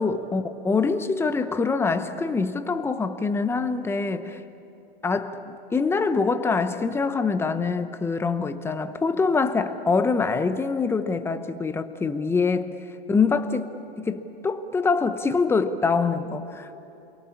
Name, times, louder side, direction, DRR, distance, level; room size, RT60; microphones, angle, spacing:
voice 1, 0.0-4.4 5.0-12.7 13.1-13.7 14.0-16.8, left 4 dB, 10° left, 10 dB, 0.9 m, -24 dB
29.5 x 23.0 x 8.6 m, 2.9 s
hypercardioid pair, 130°, 30 cm